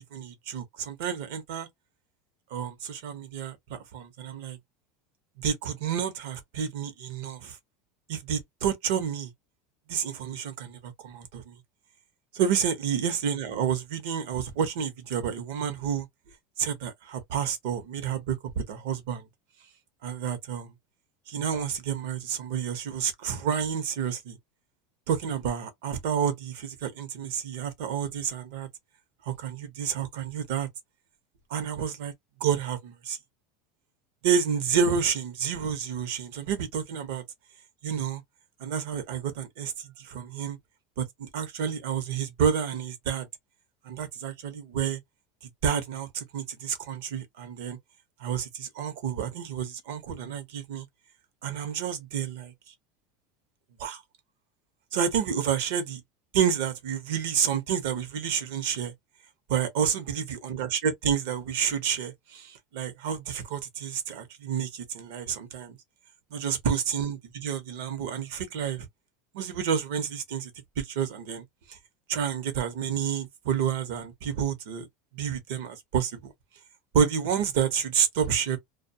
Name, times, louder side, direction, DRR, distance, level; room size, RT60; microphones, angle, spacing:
voice 1, 0.1-1.7 2.5-4.6 5.4-7.6 8.1-9.3 9.9-11.5 12.3-16.1 16.6-18.4 18.7-19.2 20.0-20.7 21.3-24.4 25.1-28.7 29.3-30.7 31.5-32.1 32.4-33.2 34.2-37.2 37.8-38.2 38.6-39.7 40.0-40.6 41.0-43.3 43.9-45.0 45.6-47.8 48.2-50.8 51.4-52.5 53.8-54.0 54.9-56.0 56.3-58.9 59.5-60.1 60.6-65.8 66.3-68.9 69.3-70.5 70.8-71.4 72.1-74.9 75.1-76.3 76.9-78.6, right 8 dB, 75° right, 0.8 m, -29 dB
2.2 x 2.2 x 2.7 m
supercardioid pair, 130°, 0 cm